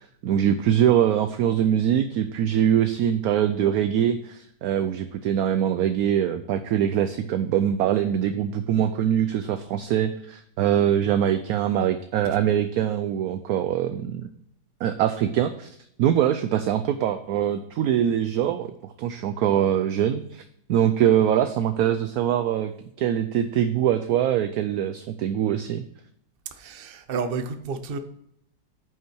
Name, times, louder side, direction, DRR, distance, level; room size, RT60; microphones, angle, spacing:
voice 1, 0.2-14.3 14.8-15.7 16.0-18.7 19.0-20.4 20.7-22.7 23.0-25.8, right 10 dB, 70° right, 9 dB, 0.9 m, -23 dB
voice 2, 26.5-28.0, right 5 dB, 45° right, 8 dB, 0.8 m, -31 dB
9.3 x 5.6 x 4.5 m, 0.73 s
omnidirectional pair, 1.9 m